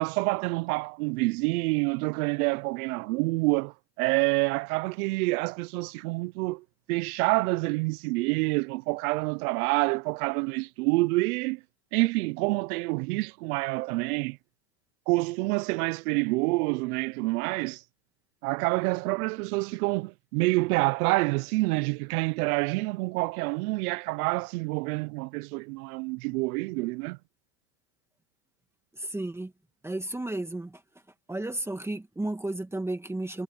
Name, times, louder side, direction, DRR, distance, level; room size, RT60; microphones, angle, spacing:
voice 1, 0.0-11.6 11.9-14.4 15.1-17.8 18.4-27.2, right 25 dB, 60° right, 0.7 m, -27 dB
voice 2, 28.9-29.5 29.8-30.8 31.3-33.4, right 2 dB, 5° right, 1.8 m, -33 dB
supercardioid pair, 155°, 49 cm